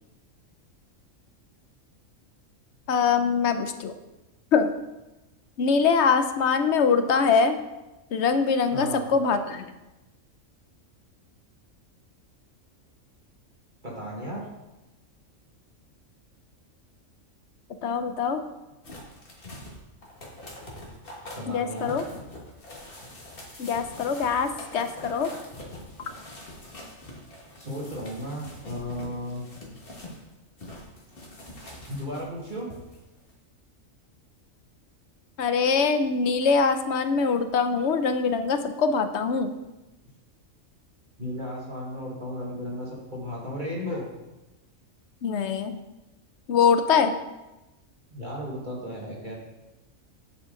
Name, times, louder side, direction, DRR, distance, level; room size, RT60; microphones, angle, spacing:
voice 1, 2.9-3.9 4.5-4.7 5.6-7.6 8.1-9.6 17.8-18.4 21.5-22.0 23.6-25.3 35.4-39.5 45.2-45.8 46.5-47.1, left 5 dB, 65° left, 9 dB, 0.9 m, -23 dB
voice 2, 8.7-9.1 13.8-14.4 21.4-22.0 27.6-29.5 31.9-32.7 41.2-44.0 48.1-49.4, equal, 35° right, -4 dB, 1.9 m, -34 dB
sound 1, 18.8-30.2 30.6-33.0 33.3-33.4, left 1 dB, 45° left, 1.8 m, -44 dB
8.4 x 7.3 x 3.8 m, 1.0 s
omnidirectional pair, 1.4 m